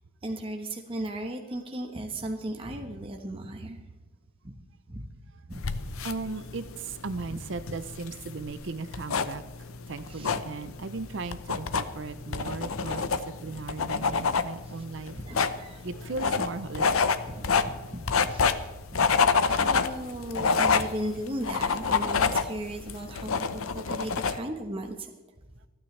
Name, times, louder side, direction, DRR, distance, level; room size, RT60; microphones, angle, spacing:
voice 1, 0.2-3.8 4.4-4.5 4.9-5.1 5.5-5.8 7.3-7.4 10.1-10.3 13.4-13.6 14.7-15.9 17.2-19.1 19.4-25.1, right 1 dB, 25° right, 2 dB, 1.1 m, -37 dB
voice 2, 5.3-5.8 6.0-15.2 15.8-17.3, right 3 dB, 60° right, 12 dB, 0.6 m, -37 dB
sound 1, 5.5-24.4, left 5 dB, 90° left, 0.8 m, -28 dB
28.0 x 9.6 x 3.3 m, 1.1 s
head